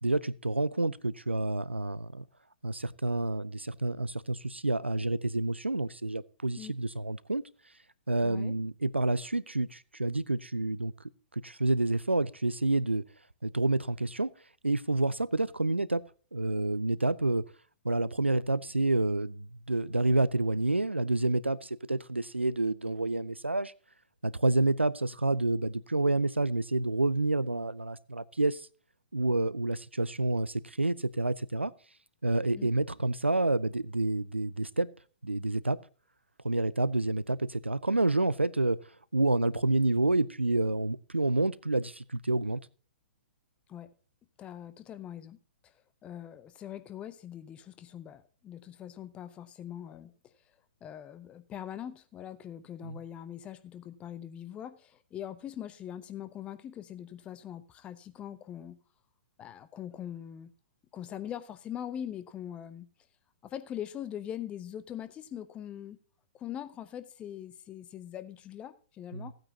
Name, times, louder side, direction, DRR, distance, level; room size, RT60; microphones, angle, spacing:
voice 1, 0.0-2.2 2.6-7.4 8.1-10.9 11.3-13.0 13.4-14.3 14.6-16.0 16.3-17.4 17.8-23.7 24.2-28.6 29.1-31.7 32.2-34.9 35.2-35.8 36.4-38.8 39.1-42.6 52.8-53.0 69.1-69.3, right 2 dB, 90° right, 0.4 m, -28 dB
voice 2, 8.2-8.6 32.5-32.7 43.7-43.9 44.4-45.4 45.6-45.7 46.0-50.1 50.8-58.8 59.4-60.5 60.9-62.9 63.4-66.0 66.3-69.3, left 10 dB, 20° left, 0.6 m, -42 dB
15.5 x 8.9 x 2.8 m
figure-of-eight pair, 115°, 6 cm